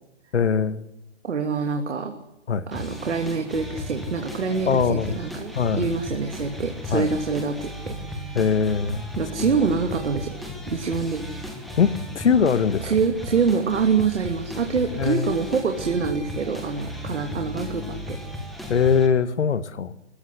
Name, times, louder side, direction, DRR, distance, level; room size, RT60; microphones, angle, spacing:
voice 1, 0.3-0.8 2.5-2.7 4.7-5.2 5.6-5.9 6.9-7.1 8.4-9.1 9.4-9.6 11.8-12.9 15.0-15.3 18.7-19.9, left 6 dB, 75° left, 13 dB, 1.9 m, -22 dB
voice 2, 1.2-2.1 2.7-8.4 9.2-10.4 10.7-11.3 12.8-18.2, right 5 dB, 70° right, 4 dB, 2.9 m, -25 dB
sound 1, 2.7-19.1, left 1 dB, ahead, 1.5 m, -35 dB
26.0 x 16.0 x 10.0 m, 0.89 s
hypercardioid pair, 175°, 35 cm